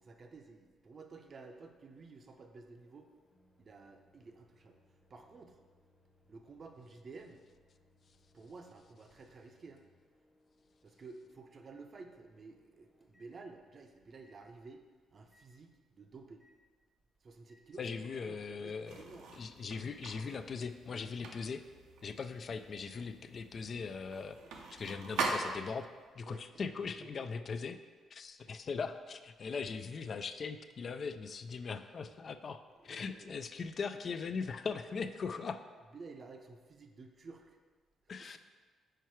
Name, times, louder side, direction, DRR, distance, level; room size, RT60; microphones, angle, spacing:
voice 1, 0.0-3.1 3.6-4.8 5.1-5.6 6.3-7.4 8.3-9.8 10.8-14.8 15.1-16.4 17.2-19.4 23.0-23.1 26.2-27.3 28.5-28.6 32.8-33.4 35.9-37.6 38.2-38.4, right 3 dB, 45° right, 4 dB, 0.6 m, -53 dB
Microwave oven, 1.2-13.8 14.2-14.4 15.3-15.5 16.4-16.6 17.5-17.6, left 1 dB, 15° left, 0.8 m, -71 dB
voice 2, 17.8-19.0 19.4-21.6 22.0-24.4 24.7-25.9 26.2-27.8 28.1-35.6 38.1-38.4, left 5 dB, 50° left, 10 dB, 0.3 m, -40 dB
sound 1, 18.9-25.9, right 3 dB, 85° right, 0.7 m, -42 dB
4.6 x 4.5 x 4.6 m, 1.5 s
cardioid pair, 90°, 0 cm